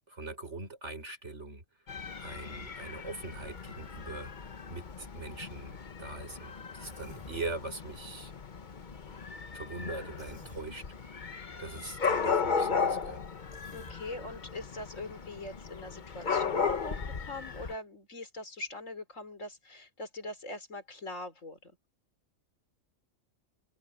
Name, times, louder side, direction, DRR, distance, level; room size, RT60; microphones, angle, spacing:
voice 1, 0.1-1.6 2.2-4.3 4.7-8.3 9.5-10.8 11.6-13.2, right 3 dB, 55° right, 5.3 m, -42 dB
Dog / Cat, 1.9-17.7, left 5 dB, 40° left, 1.1 m, -36 dB
Human voice, 6.8-7.4 10.2-10.6 13.5-14.0, equal, 20° left, 6.5 m, -51 dB
voice 2, 13.7-21.7, left 2 dB, 70° left, 4.1 m, -42 dB
omnidirectional pair, 1.4 m